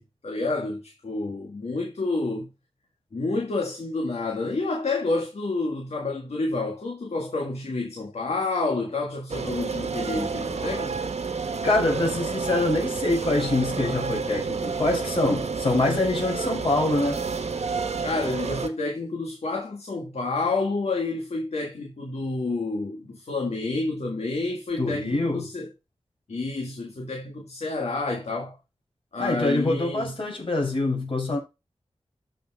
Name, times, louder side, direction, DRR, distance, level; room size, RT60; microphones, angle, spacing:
voice 1, 0.0-2.5 3.1-11.0 18.0-25.7 26.3-28.6 29.1-30.1, left 3 dB, 75° left, 1.9 m, -29 dB
sound 1, 9.3-18.7, right 5 dB, 85° right, 1.5 m, -30 dB
voice 2, 11.6-17.2 24.8-25.4 29.2-31.4, left 2 dB, 50° left, 5.5 m, -25 dB
14.0 x 5.4 x 2.4 m
wide cardioid pair, 80°, 11 cm